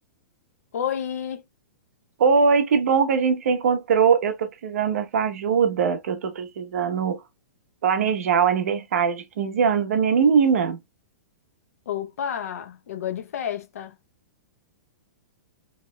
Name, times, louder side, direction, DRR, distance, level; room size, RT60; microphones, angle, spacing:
voice 1, 0.7-1.4 11.9-14.0, left 9 dB, 65° left, 0.7 m, -30 dB
voice 2, 2.2-7.2 7.8-10.8, right 6 dB, 60° right, 0.8 m, -21 dB
4.6 x 2.9 x 2.2 m
hypercardioid pair, 175°, 9 cm